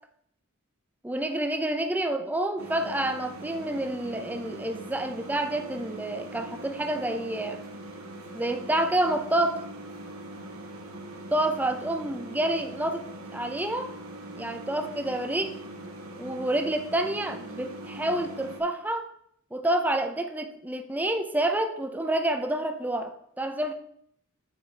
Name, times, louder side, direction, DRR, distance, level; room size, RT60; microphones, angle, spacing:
voice 1, 1.0-7.6 8.3-9.7 11.3-13.9 14.4-15.6 16.2-19.1 19.5-23.7, right 1 dB, 10° right, 6 dB, 0.5 m, -28 dB
sound 1, 2.6-18.6, right 1 dB, 90° right, 1.0 m, -42 dB
8.5 x 4.4 x 3.3 m, 0.67 s
head